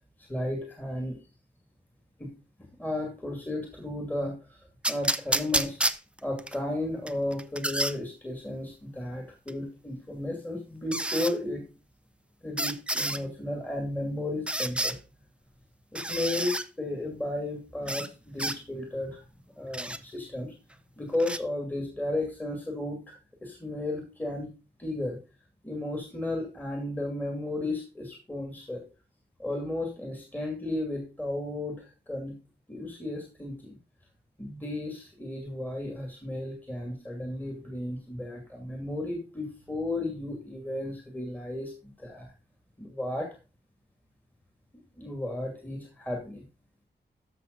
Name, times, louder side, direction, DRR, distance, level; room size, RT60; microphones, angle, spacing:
voice 1, 0.2-1.2 2.2-2.3 2.7-4.6 4.9-5.8 6.2-11.6 12.4-15.0 15.9-19.3 19.5-20.5 21.0-24.5 24.8-25.2 25.6-28.8 29.4-32.4 32.7-33.8 34.4-42.3 42.8-43.4 44.7-46.4, left 1 dB, 10° left, 2 dB, 2.3 m, -34 dB
sound 1, 4.8-6.6 7.1-8.0 9.5-9.6 10.9-11.3 12.6-13.2 14.5-15.0 15.9-16.7 17.9-18.1 18.4-18.6 19.7-20.0 21.2-21.4, right 1 dB, 5° right, 0.6 m, -29 dB
13.5 x 6.1 x 4.0 m, 0.31 s
wide cardioid pair, 135°, 17 cm